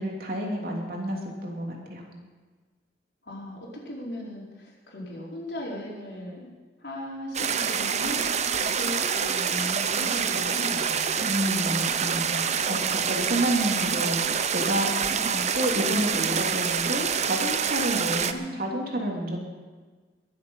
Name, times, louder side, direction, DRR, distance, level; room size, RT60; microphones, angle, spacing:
voice 1, 0.0-2.0 11.2-14.9 15.5-19.4, right 1 dB, 60° right, -1 dB, 3.1 m, -29 dB
voice 2, 3.2-6.5 6.8-11.1 15.1-15.4 18.2-18.6, left 1 dB, 75° left, -4 dB, 4.7 m, -37 dB
sound 1, 7.3-18.3, right 7 dB, 40° right, 0.7 m, -26 dB
22.5 x 7.8 x 5.7 m, 1.4 s
head